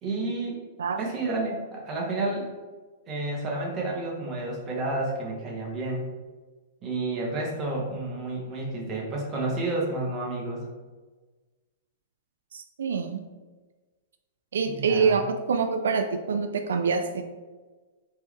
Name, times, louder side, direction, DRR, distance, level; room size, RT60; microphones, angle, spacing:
voice 1, 0.0-0.6 1.0-2.5 3.1-6.0 6.8-10.6 14.7-15.2, right 2 dB, 25° right, -2 dB, 1.2 m, -30 dB
voice 2, 12.5-13.2 14.5-15.2 15.5-17.2, right 5 dB, 90° right, 7 dB, 0.4 m, -25 dB
4.3 x 3.2 x 3.5 m, 1.3 s
hypercardioid pair, 150°, 0 cm